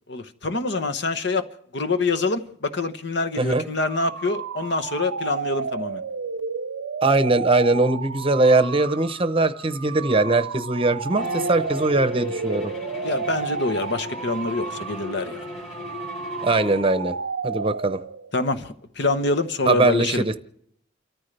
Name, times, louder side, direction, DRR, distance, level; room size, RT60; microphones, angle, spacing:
voice 1, 0.1-1.5 1.7-6.0 13.0-15.4 18.3-20.2, left 3 dB, 60° left, 9 dB, 1.1 m, -25 dB
sound 1, 3.7-18.4, right 5 dB, 75° right, 0.6 m, -32 dB
voice 2, 7.0-12.7 16.4-17.2 17.4-18.0 19.7-20.3, right 2 dB, 30° right, 12 dB, 0.8 m, -21 dB
Bowed string instrument, 11.1-16.9, left 2 dB, 40° left, 3.8 m, -36 dB
29.5 x 14.0 x 3.3 m, 0.69 s
head